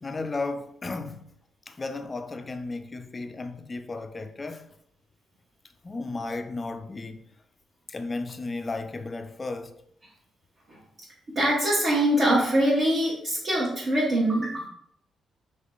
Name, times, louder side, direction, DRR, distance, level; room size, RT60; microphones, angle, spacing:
voice 1, 0.0-1.2 1.7-4.7 5.8-7.2 7.9-9.8, left 3 dB, 25° left, 0.4 m, -34 dB
voice 2, 11.3-14.7, right 1 dB, 45° right, 1.2 m, -23 dB
3.6 x 3.3 x 3.8 m
cardioid pair, 110°, 0 cm